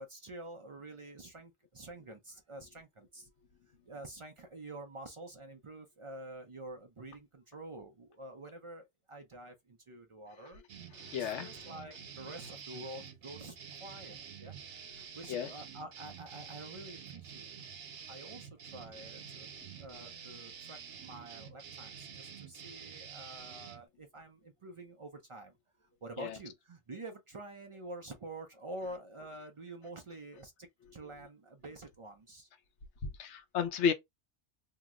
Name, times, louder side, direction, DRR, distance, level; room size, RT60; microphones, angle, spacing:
voice 1, 0.0-3.3 3.9-10.6 11.2-14.6 14.9-17.5 18.1-19.5 19.8-25.5 26.0-32.5, right 1 dB, 50° right, 0.4 m, -48 dB
sound 1, 10.7-23.8, right 7 dB, 90° right, 1.0 m, -48 dB
voice 2, 11.1-11.5 15.3-15.5 26.2-26.4 33.0-33.9, left 7 dB, 90° left, 1.0 m, -32 dB
2.8 x 2.0 x 3.5 m
omnidirectional pair, 1.1 m